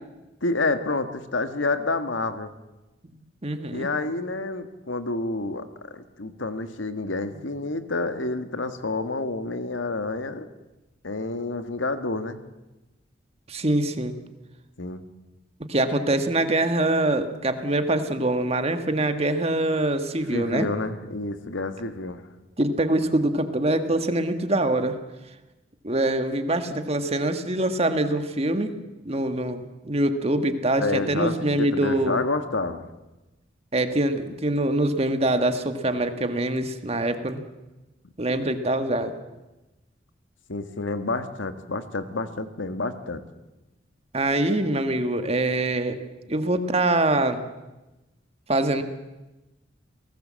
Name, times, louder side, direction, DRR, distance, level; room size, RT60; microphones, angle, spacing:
voice 1, 0.4-2.5 3.7-10.5 11.0-12.4 14.8-15.0 20.3-22.2 30.8-32.8 40.5-43.2, left 3 dB, 85° left, 9 dB, 1.7 m, -29 dB
voice 2, 3.4-3.9 13.5-14.1 15.7-20.7 22.6-24.9 25.8-28.8 29.0-32.2 33.7-37.4 38.2-39.1 44.1-46.0 46.3-47.4 48.5-48.8, right 1 dB, 35° right, 8 dB, 1.7 m, -24 dB
29.5 x 18.5 x 7.6 m, 1.1 s
head